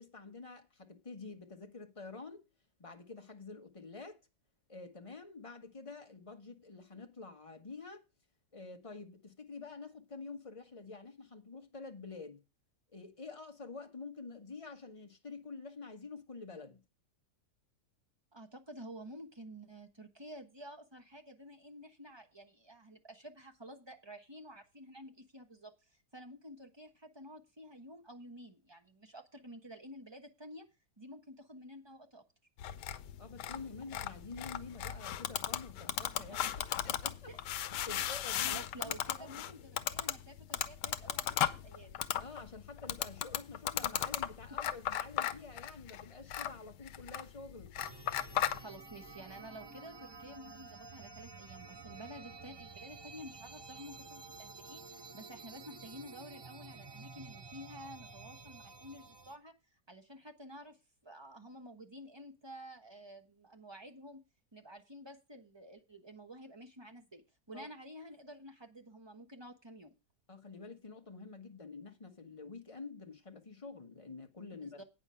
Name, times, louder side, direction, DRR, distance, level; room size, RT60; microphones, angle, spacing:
voice 1, 0.0-2.4 2.8-4.2 4.7-8.0 8.5-12.4 12.9-16.8 33.2-36.5 36.8-37.3 37.9-39.5 42.2-47.7 67.5-67.7 70.3-74.8, left 4 dB, 25° left, 1.0 m, -48 dB
voice 2, 18.3-25.7 26.1-30.7 31.0-32.2 36.3-36.7 37.3-38.2 38.4-42.0 44.5-44.6 48.6-59.5 59.9-60.8 61.0-64.2 64.5-67.2 67.5-69.9 74.6-74.8, equal, 20° right, 1.0 m, -51 dB
sound 1, 32.6-48.6, left 11 dB, 90° left, 1.3 m, -37 dB
sound 2, 47.8-59.4, right 4 dB, 40° right, 0.3 m, -51 dB
8.9 x 6.4 x 5.6 m
omnidirectional pair, 1.8 m